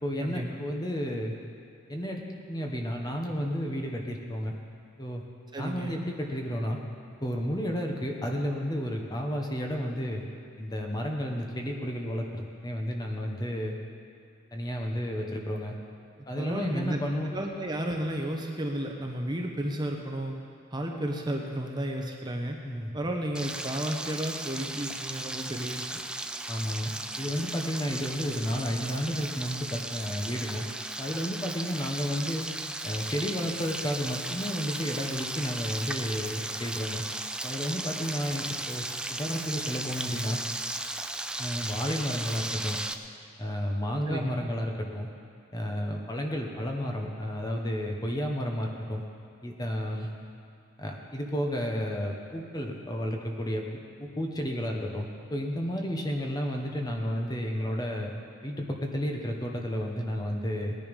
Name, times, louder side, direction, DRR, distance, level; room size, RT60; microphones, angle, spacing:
voice 1, 0.0-1.3 1.9-2.2 2.5-4.5 5.0-5.2 5.6-6.8 7.2-10.2 10.6-13.7 14.5-15.7 16.3-17.3 22.6-22.9 26.5-26.9 27.2-30.6 31.0-32.4 32.8-37.0 37.4-38.8 39.1-40.4 41.4-42.8 43.4-45.1 45.5-49.0 49.4-50.1 50.8-53.6 54.0-58.1 58.4-60.8, equal, 20° left, 1 dB, 1.1 m, -32 dB
voice 2, 5.5-6.0 16.4-17.0 17.3-20.3 20.7-22.6 22.9-25.9 44.1-44.3, right 1 dB, 20° right, 1 dB, 1.0 m, -32 dB
Frying (food), 23.3-42.9, right 2 dB, 5° right, 0.3 m, -36 dB
18.5 x 10.5 x 5.3 m, 2.3 s
head